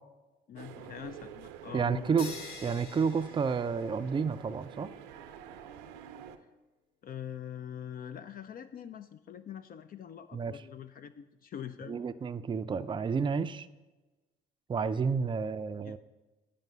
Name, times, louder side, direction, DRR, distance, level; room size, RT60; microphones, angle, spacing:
voice 1, 0.5-2.2 7.0-12.0 15.8-16.0, left 9 dB, 45° left, 12 dB, 0.4 m, -44 dB
sound 1, 0.6-6.4, right 9 dB, 80° right, 0.6 m, -48 dB
voice 2, 1.7-2.3 2.6-4.9 10.3-10.6 11.9-13.7 14.7-16.0, right 5 dB, 25° right, 12 dB, 0.4 m, -30 dB
sound 2, 2.2-4.3, left 3 dB, 80° left, 1.0 m, -46 dB
9.2 x 5.2 x 5.5 m, 1.2 s
hypercardioid pair, 60°, 20 cm